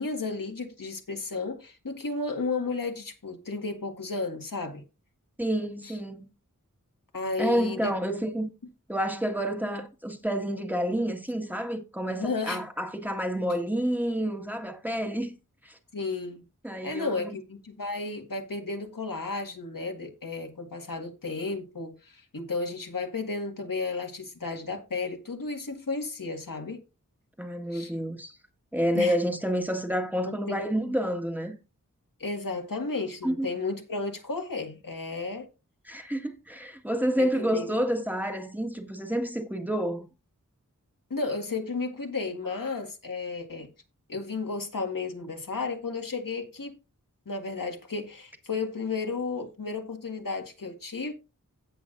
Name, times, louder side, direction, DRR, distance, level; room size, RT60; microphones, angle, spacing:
voice 1, 0.0-4.8 5.8-5.9 7.1-7.9 12.1-12.6 15.9-16.4 16.8-26.8 27.7-27.9 28.9-29.2 30.2-30.6 30.9-31.0 32.2-35.5 37.2-37.7 41.1-43.7 44.1-46.7 47.2-51.1, left 3 dB, 80° left, 1.8 m, -33 dB
voice 2, 5.4-6.3 7.4-8.5 8.9-15.3 15.6-15.8 16.6-17.3 27.4-28.4 28.7-31.6 33.2-33.5 35.9-40.1, equal, 5° right, 1.7 m, -29 dB
16.5 x 6.1 x 2.5 m
wide cardioid pair, 50°, 33 cm